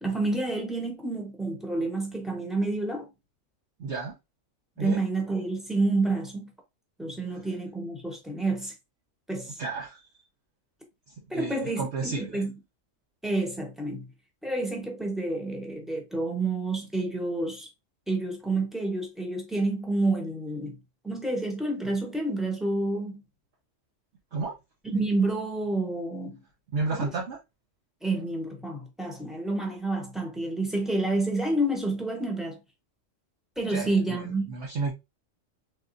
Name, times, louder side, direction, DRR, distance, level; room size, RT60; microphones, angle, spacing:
voice 1, 0.0-3.1 4.8-6.5 7.0-8.7 9.3-9.6 11.3-12.5 13.2-14.1 14.4-17.7 18.1-20.8 21.0-23.2 24.8-26.4 26.9-27.1 28.0-32.6 33.6-34.5, right 2 dB, ahead, 0.9 m, -29 dB
voice 2, 3.8-4.1 4.8-5.0 7.3-7.4 9.6-10.0 11.3-12.4 24.3-24.5 26.7-27.4 33.7-34.9, right 4 dB, 60° right, 1.0 m, -32 dB
3.7 x 3.6 x 2.6 m
omnidirectional pair, 1.3 m